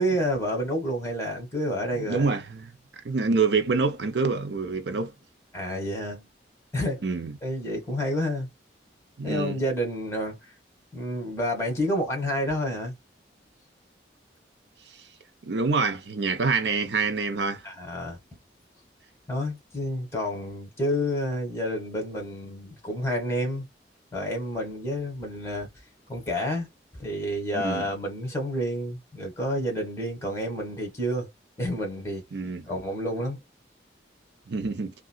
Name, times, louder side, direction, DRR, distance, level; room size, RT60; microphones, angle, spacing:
voice 1, 0.0-2.4 5.5-6.2 6.7-7.1 7.4-8.5 9.2-10.4 10.9-12.9 17.6-18.2 19.3-23.7 24.1-25.7 26.1-26.7 26.9-31.3 31.6-32.2 32.6-33.4, equal, 15° left, 1.6 m, -29 dB
voice 2, 2.0-2.7 3.0-5.1 7.0-7.3 9.2-9.6 15.4-17.6 27.5-27.8 32.3-32.6 34.5-34.9, right 4 dB, 70° right, 0.6 m, -26 dB
3.7 x 2.3 x 2.3 m
head